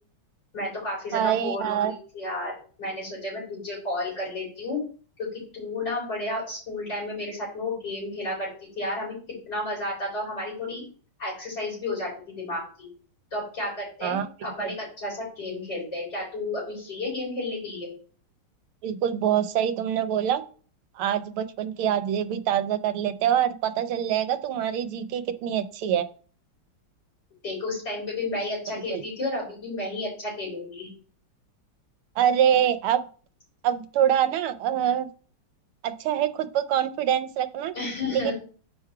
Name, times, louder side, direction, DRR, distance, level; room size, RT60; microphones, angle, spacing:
voice 1, 0.5-4.8 5.2-9.1 9.5-10.8 11.2-12.9 13.3-17.9 27.4-30.9 37.7-38.3, left 2 dB, 55° left, -6 dB, 5.0 m, -32 dB
voice 2, 1.1-1.9 14.0-14.3 14.6-14.7 18.8-20.4 20.9-26.0 28.9-29.0 32.2-33.0 33.6-35.1 35.8-37.7 38.1-38.3, right 10 dB, 90° right, 10 dB, 1.5 m, -25 dB
6.1 x 4.8 x 4.6 m, 0.41 s
omnidirectional pair, 2.3 m